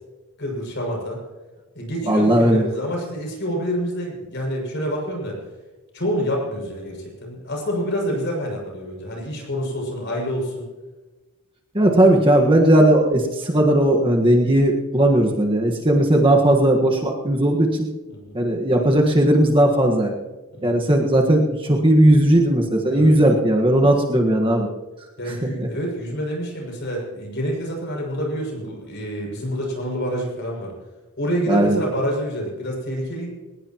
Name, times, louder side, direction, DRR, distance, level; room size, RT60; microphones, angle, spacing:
voice 1, 0.4-1.2 1.7-5.4 5.9-10.7 18.1-18.4 20.5-20.9 22.9-23.1 25.2-30.7 31.2-33.3, equal, 50° left, -1 dB, 6.7 m, -27 dB
voice 2, 2.1-2.7 11.7-17.9 18.3-20.1 20.6-24.7 25.6-25.7 31.5-31.8, right 1 dB, 25° right, 0 dB, 1.6 m, -17 dB
21.0 x 19.0 x 3.1 m, 1.2 s
head